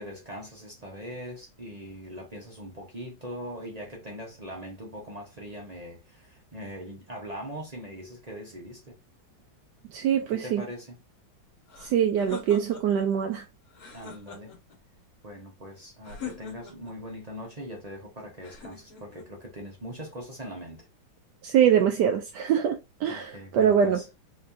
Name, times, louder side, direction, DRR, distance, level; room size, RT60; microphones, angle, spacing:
voice 1, 0.0-8.9 10.3-11.0 13.9-14.5 15.2-20.9 23.1-24.1, equal, 35° right, 0.6 m, -41 dB
voice 2, 9.9-10.6 11.8-13.4 21.4-24.0, right 8 dB, 75° right, 1.0 m, -23 dB
sound 1, 11.7-13.1 13.7-14.8 16.0-17.0 18.4-19.3, left 6 dB, 50° left, 1.5 m, -43 dB
4.2 x 3.0 x 2.6 m
omnidirectional pair, 2.2 m